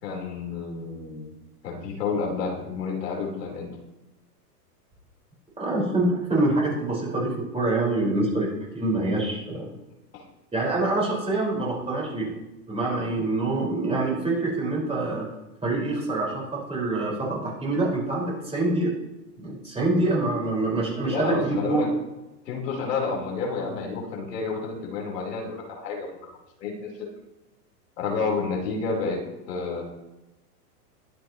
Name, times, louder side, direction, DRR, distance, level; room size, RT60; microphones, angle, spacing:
voice 1, 0.0-1.3 1.6-3.7 10.1-10.2 21.0-21.9 22.4-26.1 26.6-26.9 28.0-29.8, left 4 dB, 80° left, -1 dB, 4.2 m, -30 dB
voice 2, 5.6-9.7 10.5-12.3 12.7-15.2 15.6-18.9 19.4-21.9, right 2 dB, 10° right, -4 dB, 5.0 m, -25 dB
21.5 x 8.0 x 3.1 m, 1.0 s
hypercardioid pair, 130°, 48 cm